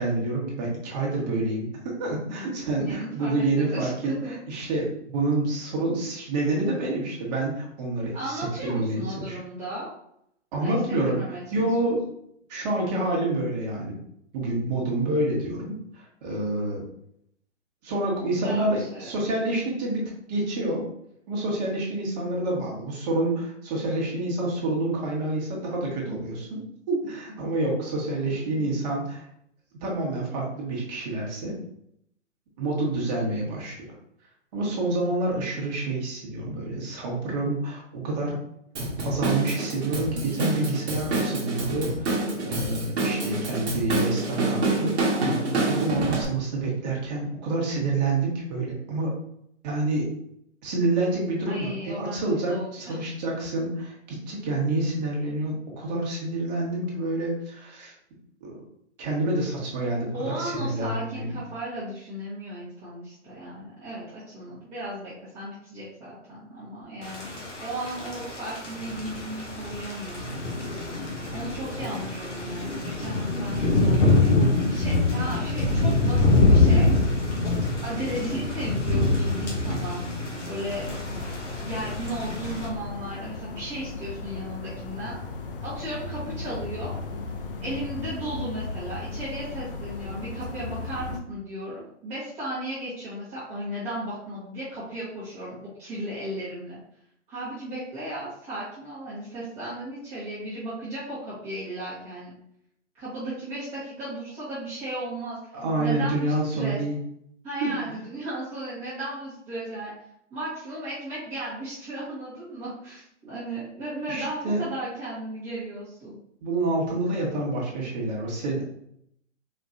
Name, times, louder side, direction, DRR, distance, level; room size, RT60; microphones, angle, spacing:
voice 1, 0.0-3.9 4.3-9.4 10.5-11.2 11.5-12.0 12.5-14.0 14.3-16.8 17.8-20.8 21.3-26.6 26.9-29.3 29.8-31.6 32.6-33.7 34.5-38.4 39.0-45.1 45.5-49.1 49.6-50.1 50.6-57.9 58.4-58.6 59.0-61.4 105.5-107.0 107.6-108.0 114.1-114.6 116.4-118.6, right 2 dB, 35° right, -2 dB, 1.4 m, -28 dB
voice 2, 2.3-4.3 8.1-9.9 10.6-12.0 18.2-19.1 28.3-28.7 40.1-40.6 51.5-53.0 60.1-70.5 71.3-74.3 74.6-77.5 77.8-80.0 80.4-81.1 81.6-85.2 85.6-86.9 87.6-96.8 97.3-102.3 102.9-105.4 105.8-106.8 107.4-109.9 110.3-116.2, right 1 dB, 15° right, -11 dB, 1.2 m, -35 dB
Drum kit / Drum, 38.8-46.3, right 2 dB, 60° right, 1.2 m, -27 dB
Thunder / Rain, 67.0-82.7, left 2 dB, 70° left, 1.4 m, -25 dB
sound 1, 80.6-91.2, left 3 dB, 50° left, 0.6 m, -36 dB
4.3 x 2.9 x 2.6 m, 0.73 s
figure-of-eight pair, 135°, 37 cm